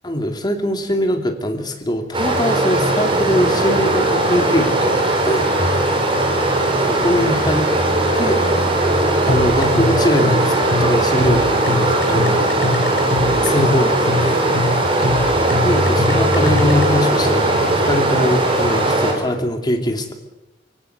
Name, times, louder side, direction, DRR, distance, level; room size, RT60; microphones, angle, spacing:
voice 1, 0.0-5.5 6.9-7.7 8.1-8.4 9.3-12.6 13.2-14.4 14.7-14.8 15.6-20.1, equal, 25° left, 5 dB, 2.6 m, -22 dB
Stream, 2.1-19.1, right 1 dB, 30° right, 4.1 m, -18 dB
sound 1, 9.3-16.8, left 2 dB, 80° left, 7.4 m, -23 dB
25.0 x 17.0 x 8.1 m, 1.0 s
head